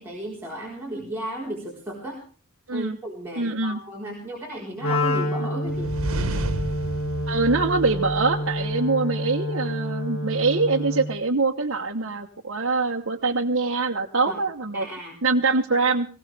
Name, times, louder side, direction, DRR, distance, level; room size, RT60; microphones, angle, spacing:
voice 1, 0.0-2.2 2.7-5.9 14.3-14.4 14.7-15.2, equal, 10° right, -5 dB, 4.3 m, -34 dB
voice 2, 3.4-3.8 7.3-14.8 15.2-16.1, right 3 dB, 60° right, 0 dB, 1.1 m, -24 dB
Wind instrument woodwind instrument, 4.8-11.2, left 1 dB, 85° left, 2.3 m, -28 dB
sound 1, 5.7-8.6, right 1 dB, 80° right, 1.3 m, -31 dB
20.0 x 17.0 x 3.4 m, 0.40 s
head